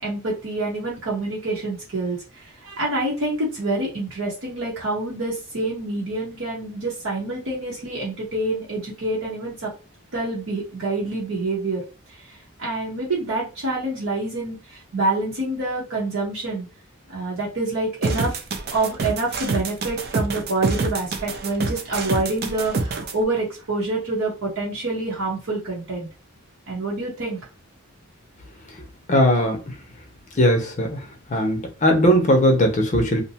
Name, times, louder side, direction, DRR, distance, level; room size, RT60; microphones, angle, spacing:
voice 1, 0.0-9.7 10.1-11.8 12.1-16.7 17.1-18.4 18.7-26.1 26.7-27.4, right 2 dB, 70° right, 0.9 m, -27 dB
sound 1, 18.0-23.1, right 3 dB, 50° right, 0.4 m, -26 dB
voice 2, 29.1-29.6 30.4-31.0 31.3-33.2, equal, 35° left, 0.5 m, -18 dB
2.6 x 2.1 x 2.7 m
head